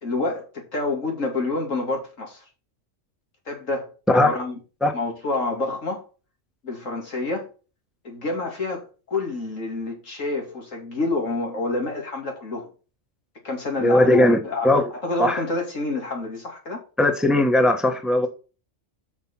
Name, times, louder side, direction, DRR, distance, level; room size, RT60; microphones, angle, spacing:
voice 1, 0.0-2.4 3.5-4.6 4.9-6.0 6.6-7.5 8.0-12.7 13.4-14.7 15.0-16.8, left 3 dB, 85° left, 3.1 m, -28 dB
voice 2, 13.8-14.4 14.6-14.9 15.2-15.4 17.0-18.3, left 1 dB, ahead, 1.1 m, -18 dB
6.7 x 5.9 x 5.4 m
omnidirectional pair, 1.3 m